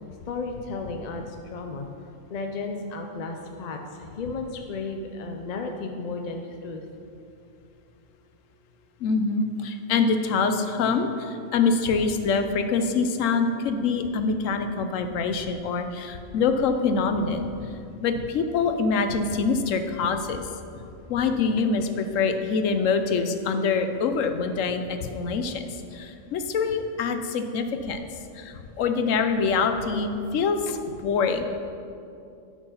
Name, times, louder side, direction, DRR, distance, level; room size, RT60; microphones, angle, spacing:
voice 1, 0.3-6.9 29.7-29.8, left 3 dB, 50° left, 3 dB, 0.5 m, -34 dB
voice 2, 9.0-17.5 18.0-20.4 21.1-28.1 28.4-31.5, left 4 dB, 85° left, 7 dB, 1.1 m, -25 dB
10.0 x 4.9 x 5.6 m, 2.6 s
omnidirectional pair, 1.3 m